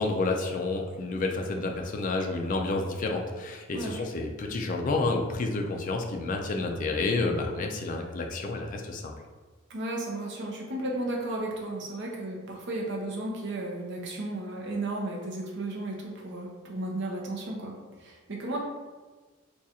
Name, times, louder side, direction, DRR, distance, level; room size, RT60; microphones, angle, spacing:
voice 1, 0.0-9.1, left 3 dB, 35° left, 2 dB, 0.3 m, -30 dB
voice 2, 3.7-4.1 9.7-18.6, right 2 dB, 55° right, -1 dB, 0.6 m, -34 dB
2.5 x 2.3 x 4.1 m, 1.3 s
head